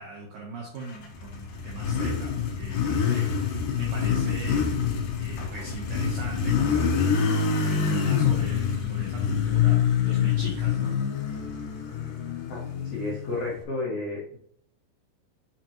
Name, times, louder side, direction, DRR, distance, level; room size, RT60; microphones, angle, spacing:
voice 1, 0.0-3.3 3.8-4.6 5.2-9.8 10.0-10.9, right 2 dB, 80° right, -2 dB, 2.0 m, -40 dB
Motorcycle, 0.9-13.6, left 7 dB, 85° left, 1.9 m, -26 dB
voice 2, 12.8-14.4, left 2 dB, 65° left, -7 dB, 1.8 m, -31 dB
6.9 x 5.2 x 2.9 m, 0.64 s
omnidirectional pair, 5.3 m